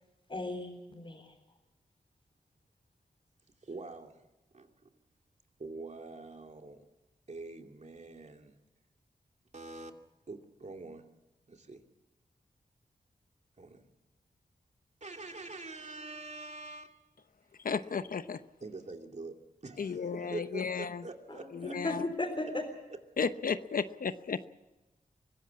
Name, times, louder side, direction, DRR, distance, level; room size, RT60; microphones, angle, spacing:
voice 1, 0.3-1.2 21.3-22.6, left 2 dB, 35° left, -1 dB, 4.1 m, -36 dB
voice 2, 3.7-4.2 4.5-4.7 5.6-6.8 7.3-8.5 9.5-9.9 10.3-11.0 11.5-11.8 13.6-13.8 15.0-17.0 18.6-19.3 19.6-21.7, right 3 dB, 50° right, 4 dB, 2.6 m, -44 dB
voice 3, 17.6-18.4 19.8-21.0 21.5-22.0 23.2-24.5, left 5 dB, 70° left, 12 dB, 0.8 m, -34 dB
24.0 x 15.5 x 8.6 m, 1.1 s
cardioid pair, 60°, 15 cm